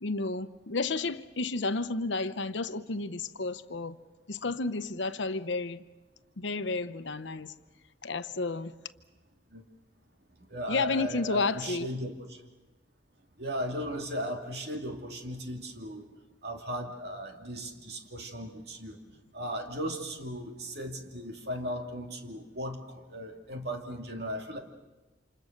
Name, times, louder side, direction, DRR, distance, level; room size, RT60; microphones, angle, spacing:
voice 1, 0.0-4.0 4.3-5.8 6.4-7.5 8.0-8.7 10.7-11.9, left 3 dB, 80° left, 0.9 m, -31 dB
voice 2, 10.5-12.4 13.4-16.1 16.4-19.0 19.3-24.6, equal, 60° right, 2.6 m, -37 dB
29.0 x 27.0 x 6.6 m
head